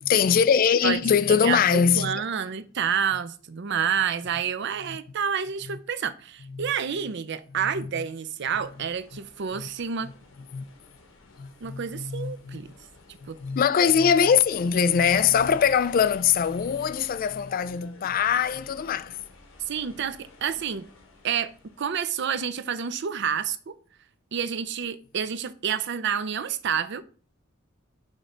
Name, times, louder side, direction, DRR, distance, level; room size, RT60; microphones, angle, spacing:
voice 1, 0.0-2.2 4.9-5.0 5.7-5.8 6.5-6.7 7.7-7.9 9.5-9.7 10.5-10.7 11.4-12.6 13.2-19.2, left 7 dB, 45° left, 0.3 m, -22 dB
voice 2, 1.3-10.1 11.6-12.7 13.3-13.4 19.7-20.9 21.2-23.7 24.3-27.0, right 7 dB, 60° right, 0.5 m, -29 dB
sound 1, 8.4-22.1, left 2 dB, 80° left, 1.3 m, -51 dB
6.4 x 3.2 x 5.1 m
head